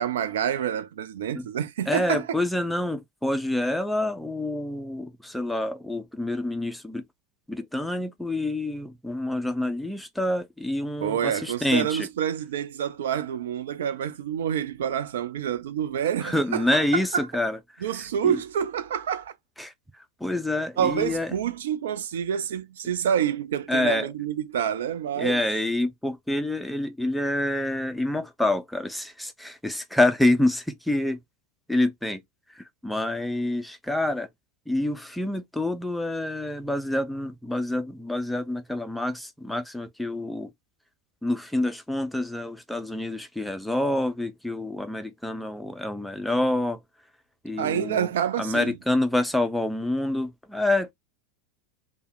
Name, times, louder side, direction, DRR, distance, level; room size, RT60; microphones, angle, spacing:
voice 1, 0.0-2.4 11.0-16.6 17.1-17.2 17.8-19.3 20.8-25.4 47.6-48.7, right 9 dB, 60° right, 0.5 m, -27 dB
voice 2, 1.9-7.0 7.5-12.1 16.2-18.4 19.6-21.3 23.7-24.1 25.2-31.2 31.7-32.2 32.5-34.3 34.7-40.5 41.2-46.8 47.4-48.1 48.4-50.9, left 1 dB, ahead, 0.5 m, -27 dB
3.4 x 2.2 x 4.3 m
figure-of-eight pair, 85°, 0 cm